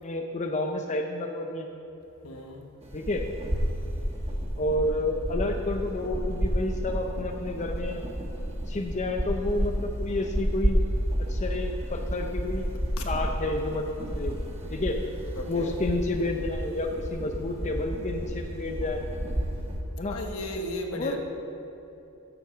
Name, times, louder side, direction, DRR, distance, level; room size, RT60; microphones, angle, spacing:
voice 1, 0.0-1.7 2.9-3.2 4.6-8.0 8.7-10.8 11.2-12.6 13.1-14.3 14.7-15.0 15.5-19.0 20.0-20.2 20.9-21.1, left 2 dB, 35° left, 3 dB, 0.6 m, -30 dB
voice 2, 2.2-2.6 13.0-13.1 15.3-15.7 20.1-21.2, left 1 dB, 75° left, 3 dB, 1.3 m, -35 dB
sound 1, 2.8-19.8, equal, 30° right, 1.2 m, -31 dB
10.5 x 7.3 x 7.2 m, 2.9 s
head